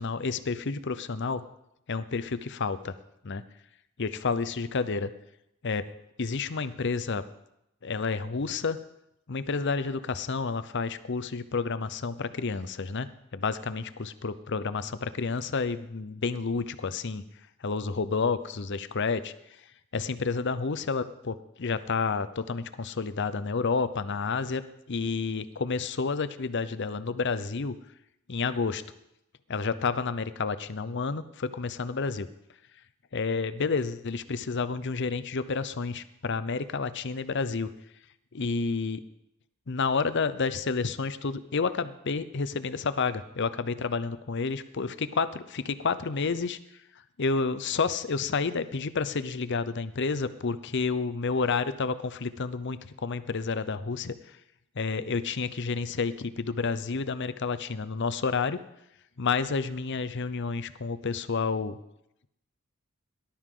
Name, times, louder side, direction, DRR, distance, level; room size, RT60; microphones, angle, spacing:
voice 1, 0.0-1.4 1.9-2.9 3.2-3.4 4.0-5.1 5.6-5.9 6.2-7.2 7.8-8.8 9.3-13.1 13.3-17.2 17.6-19.3 19.9-24.6 24.9-27.8 28.3-28.8 29.5-32.3 33.1-37.7 38.3-39.0 39.7-46.6 47.2-54.4 54.8-58.6 59.2-61.8, left 4 dB, 60° left, 13 dB, 0.7 m, -30 dB
18.5 x 12.0 x 3.8 m, 0.83 s
head